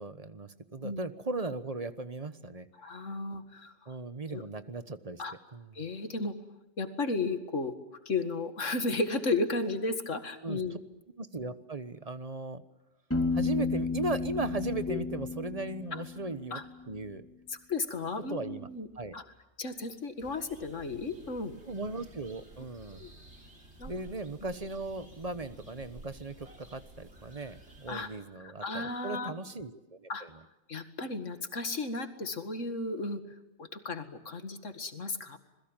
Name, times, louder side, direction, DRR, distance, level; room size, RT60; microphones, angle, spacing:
voice 1, 0.0-2.7 3.9-5.2 5.5-5.7 10.4-10.8 11.2-12.6 13.3-16.6 16.9-17.2 18.3-18.7 18.9-19.1 21.7-23.0 23.9-30.3, right 2 dB, 30° right, 12 dB, 1.2 m, -37 dB
voice 2, 2.8-3.7 4.3-4.4 5.2-5.3 5.7-6.3 6.8-7.8 8.1-10.8 14.9-15.0 15.9-16.0 16.5-16.6 17.5-18.9 19.1-19.2 19.6-21.6 22.9-23.1 23.8-23.9 27.9-28.1 28.4-29.3 30.1-30.3 30.7-33.2 33.6-35.4, left 3 dB, 70° left, 8 dB, 2.3 m, -34 dB
Piano, 13.1-16.8, left 4 dB, 10° left, 3.1 m, -33 dB
sound 1, 20.2-28.1, right 1 dB, 55° right, 5.1 m, -53 dB
27.0 x 21.0 x 9.0 m, 0.96 s
omnidirectional pair, 1.3 m